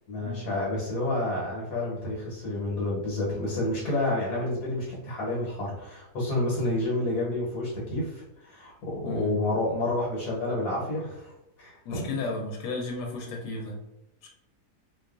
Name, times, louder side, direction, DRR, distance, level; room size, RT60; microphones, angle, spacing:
voice 1, 0.1-11.3 11.6-12.2, left 1 dB, 70° left, -4 dB, 1.3 m, -29 dB
voice 2, 9.0-9.3 11.8-13.8 14.2-14.3, left 3 dB, 85° left, 1 dB, 1.2 m, -34 dB
2.7 x 2.3 x 2.3 m, 0.93 s
omnidirectional pair, 1.7 m